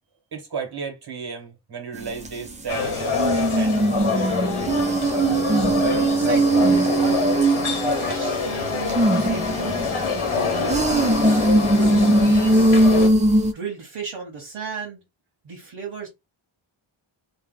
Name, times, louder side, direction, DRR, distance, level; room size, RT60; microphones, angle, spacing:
voice 1, 0.3-3.2 3.6-4.3, right 6 dB, 50° right, 1.2 m, -34 dB
sound 1, 1.9-2.3 3.0-8.3 8.9-13.5, right 2 dB, 15° right, 0.4 m, -20 dB
sound 2, 2.7-13.1, left 4 dB, 75° left, 1.1 m, -26 dB
voice 2, 5.8-9.8 10.3-11.5 11.8-12.8 13.5-15.0 15.4-16.1, right 6 dB, 70° right, 1.0 m, -34 dB
2.8 x 2.2 x 3.7 m
wide cardioid pair, 140°, 50 cm